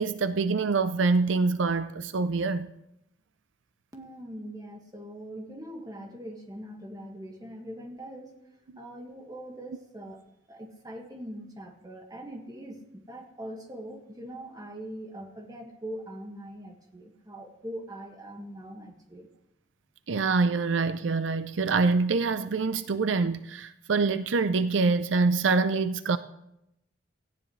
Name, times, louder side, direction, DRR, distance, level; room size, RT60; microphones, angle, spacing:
voice 1, 0.0-2.7 20.1-26.2, right 4 dB, 75° right, 0.5 m, -25 dB
voice 2, 3.9-8.4 8.8-10.2 10.5-19.3, right 1 dB, 20° right, 1.8 m, -42 dB
17.5 x 14.5 x 3.2 m
head